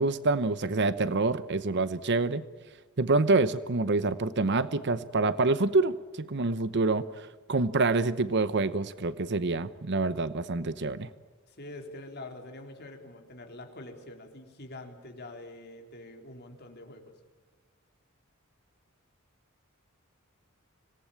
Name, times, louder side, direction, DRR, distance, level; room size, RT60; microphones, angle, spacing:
voice 1, 0.0-2.4 3.0-7.1 7.5-11.1, right 3 dB, 55° right, 14 dB, 0.8 m, -26 dB
voice 2, 11.4-17.1, left 2 dB, 50° left, 4 dB, 3.8 m, -45 dB
25.5 x 18.5 x 8.8 m, 1.4 s
head